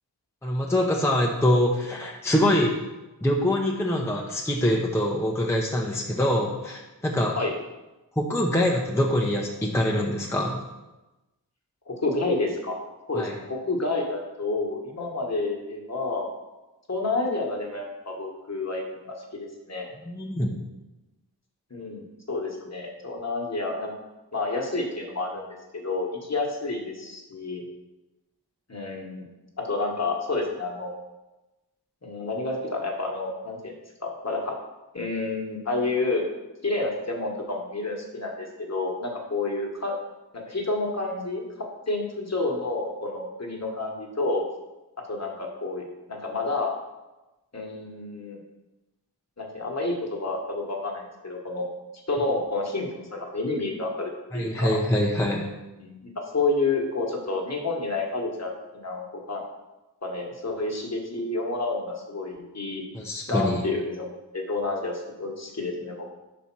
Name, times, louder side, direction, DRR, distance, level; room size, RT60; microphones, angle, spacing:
voice 1, 0.4-2.8 3.2-7.4 8.2-10.6 13.1-13.3 20.0-20.5 54.3-55.5 62.9-63.6, left 1 dB, 5° left, -1 dB, 0.7 m, -24 dB
voice 2, 11.9-12.8 13.1-16.3 16.9-19.9 21.7-22.0 22.3-23.9 24.3-27.6 28.7-29.2 29.7-30.9 32.0-33.7 34.0-34.5 34.9-36.3 36.6-39.9 40.3-41.4 41.9-44.4 45.1-46.7 47.5-48.4 49.4-51.7 52.1-54.8 55.8-59.4 60.0-62.8 63.3-66.1, left 3 dB, 40° left, 0 dB, 1.2 m, -29 dB
5.0 x 4.2 x 5.9 m, 1.0 s
wide cardioid pair, 65°, 41 cm